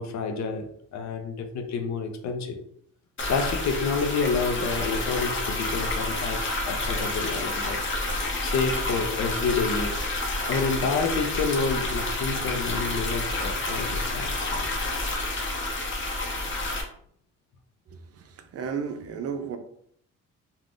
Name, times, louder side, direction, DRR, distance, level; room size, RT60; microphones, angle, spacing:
voice 1, 0.0-2.6 3.3-7.8 8.4-10.0 10.5-14.7, left 4 dB, 65° left, 0.6 m, -29 dB
sound 1, 3.2-16.8, left 2 dB, 40° left, 0.9 m, -29 dB
voice 2, 18.5-19.6, right 6 dB, 50° right, 0.5 m, -32 dB
3.3 x 2.3 x 2.5 m
cardioid pair, 90°, 30 cm